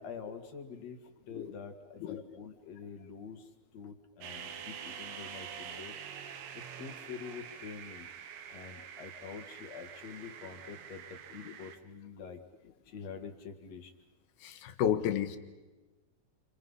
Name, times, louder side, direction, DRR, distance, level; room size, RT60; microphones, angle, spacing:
voice 1, 0.0-6.0 6.5-8.1 8.5-12.4 12.8-13.9, left 6 dB, 50° left, 5 dB, 2.5 m, -46 dB
sound 1, 4.2-11.8, right 8 dB, 85° right, 3.6 m, -46 dB
voice 2, 14.4-15.4, left 9 dB, 75° left, 8 dB, 3.4 m, -32 dB
29.5 x 28.0 x 5.6 m, 1.2 s
omnidirectional pair, 4.6 m